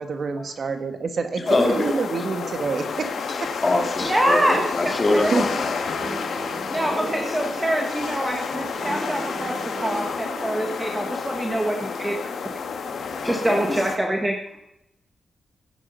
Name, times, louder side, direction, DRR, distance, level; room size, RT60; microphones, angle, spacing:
voice 1, 0.0-3.1 3.4-3.5 5.3-5.4, right 4 dB, 50° right, 8 dB, 1.5 m, -27 dB
voice 2, 1.4-1.9 3.6-5.9 6.7-7.0 13.2-13.6, left 2 dB, 25° left, 2 dB, 2.9 m, -24 dB
sound 1, 1.5-14.0, left 5 dB, 80° left, 2.2 m, -30 dB
voice 3, 4.0-5.6 6.7-12.2 13.2-14.4, right 1 dB, 10° right, 2 dB, 1.4 m, -25 dB
sound 2, 5.9-11.6, right 2 dB, 70° right, 5.8 m, -38 dB
16.5 x 11.0 x 5.4 m, 0.84 s
wide cardioid pair, 180°, 0 cm